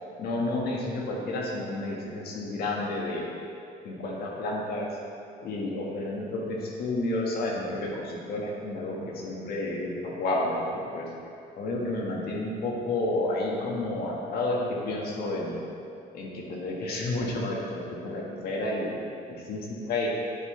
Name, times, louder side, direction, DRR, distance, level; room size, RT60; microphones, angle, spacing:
voice 1, 0.2-3.3 3.8-5.0 5.4-11.1 11.6-15.8 16.1-18.9 19.3-20.1, left 2 dB, 65° left, -2 dB, 1.7 m, -31 dB
9.7 x 8.3 x 3.3 m, 2.5 s
cardioid pair, 110°, 17 cm